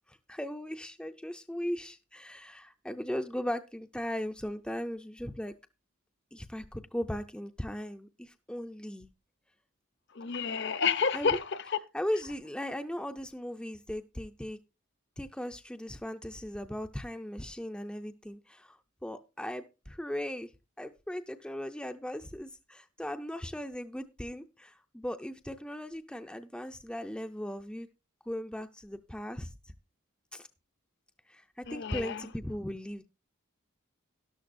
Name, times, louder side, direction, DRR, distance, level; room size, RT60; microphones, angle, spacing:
voice 1, 0.1-5.5 6.3-9.1 11.1-11.4 11.9-14.6 15.2-20.5 20.8-27.9 28.3-29.5 30.3-30.5 31.3-33.0, equal, 5° left, 0.5 m, -38 dB
voice 2, 10.1-11.8 31.7-32.2, left 6 dB, 55° left, 0.8 m, -30 dB
12.5 x 11.5 x 2.6 m
head